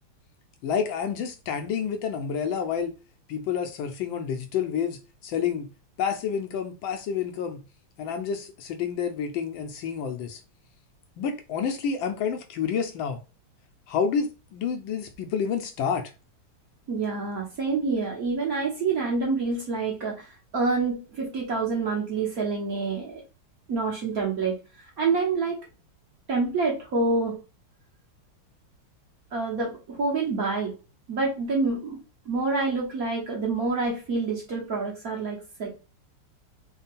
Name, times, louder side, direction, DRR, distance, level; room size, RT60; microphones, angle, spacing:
voice 1, 0.6-2.9 3.3-5.7 6.0-7.6 8.0-10.4 11.2-13.2 13.9-16.1, left 7 dB, 75° left, 1.2 m, -29 dB
voice 2, 16.9-20.3 20.5-23.2 23.7-24.6 25.0-25.6 26.3-27.4 29.3-30.7 31.1-32.0 32.3-35.7, right 4 dB, 55° right, 1.1 m, -27 dB
3.6 x 2.2 x 4.0 m
omnidirectional pair, 2.3 m